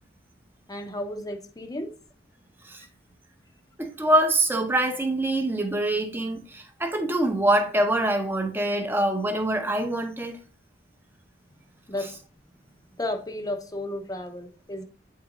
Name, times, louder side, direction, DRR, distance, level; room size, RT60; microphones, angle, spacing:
voice 1, 0.7-1.9 11.9-12.2 13.0-14.8, left 1 dB, 20° left, 0.8 m, -33 dB
voice 2, 3.8-10.4, right 1 dB, 10° right, 0.8 m, -24 dB
8.5 x 3.8 x 3.0 m
head